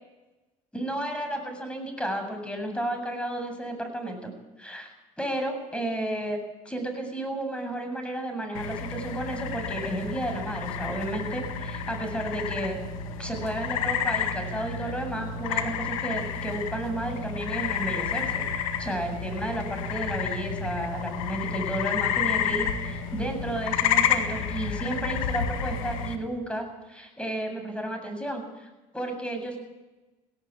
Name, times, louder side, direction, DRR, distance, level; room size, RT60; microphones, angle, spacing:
voice 1, 0.7-4.3 4.6-6.4 6.6-12.8 13.2-18.4 18.8-29.6, right 1 dB, 5° left, 5 dB, 7.6 m, -32 dB
sound 1, 8.5-26.2, left 7 dB, 85° left, 1.9 m, -30 dB
18.0 x 17.5 x 8.6 m, 1.1 s
hypercardioid pair, 75°, 17 cm